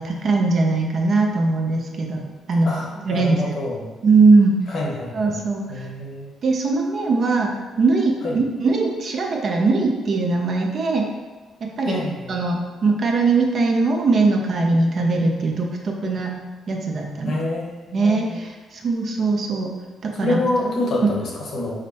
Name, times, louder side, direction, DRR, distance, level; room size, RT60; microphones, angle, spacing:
voice 1, 0.0-2.2 2.5-2.7 3.0-3.6 4.0-4.6 5.1-5.9 6.4-11.1 11.6-12.0 12.3-16.3 16.7-17.4 17.9-19.7 20.0-20.4 20.7-20.8 21.0-21.1, right 3 dB, 50° right, 1 dB, 0.7 m, -20 dB
voice 2, 2.6-3.9 4.7-5.4 5.7-6.3 8.2-8.4 11.8-12.4 17.2-18.3 20.2-21.9, left 2 dB, 60° left, -2 dB, 1.0 m, -27 dB
5.1 x 2.1 x 4.1 m, 1.2 s
cardioid pair, 105°, 0 cm